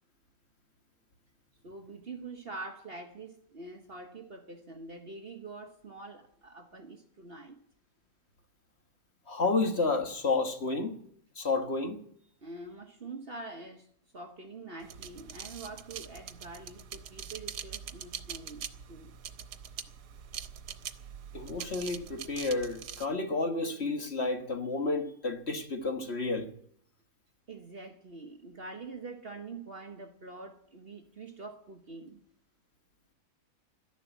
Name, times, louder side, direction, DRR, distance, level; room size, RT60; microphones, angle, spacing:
voice 1, 1.6-7.6 12.4-19.1 27.5-32.2, right 3 dB, 40° right, 1.3 m, -45 dB
voice 2, 9.3-11.0 11.3-12.0 21.3-26.5, left 3 dB, 40° left, 1.7 m, -31 dB
sound 1, 14.8-23.1, right 8 dB, 80° right, 1.5 m, -43 dB
13.0 x 11.0 x 9.2 m
omnidirectional pair, 1.7 m